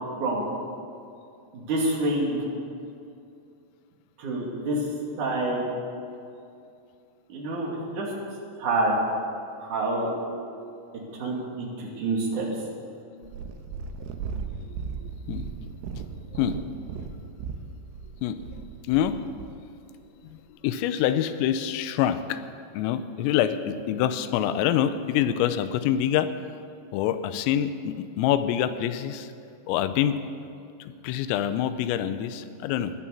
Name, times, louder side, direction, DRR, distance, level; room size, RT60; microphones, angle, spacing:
voice 1, 1.5-2.4 4.2-4.8 5.2-5.6 7.3-8.1 8.6-9.0 9.6-10.1 11.2-12.4, right 2 dB, 45° right, -3 dB, 3.3 m, -27 dB
Purr, 13.2-19.6 20.3-20.4, right 5 dB, 80° right, 3.4 m, -36 dB
voice 2, 15.0-15.7 16.3-16.6 18.2-18.4 18.9-19.2 20.2-20.4 20.6-22.5 22.7-26.3 26.9-29.3 29.7-30.2 30.8-32.9, left 10 dB, 90° left, 11 dB, 3.4 m, -26 dB
15.5 x 11.0 x 7.1 m, 2.5 s
omnidirectional pair, 5.9 m